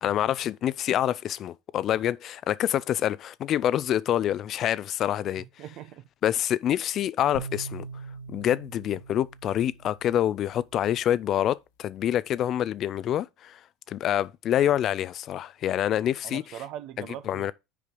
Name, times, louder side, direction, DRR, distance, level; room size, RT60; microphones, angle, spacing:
voice 1, 0.0-5.4 6.2-7.9 8.3-13.6 13.9-16.4 17.0-17.5, left 11 dB, 45° left, 0.5 m, -26 dB
voice 2, 5.4-6.1 16.2-17.5, right 11 dB, 60° right, 1.0 m, -41 dB
sound 1, 7.3-10.6, right 2 dB, 90° left, 1.4 m, -41 dB
6.8 x 5.0 x 5.3 m
supercardioid pair, 105°, 0 cm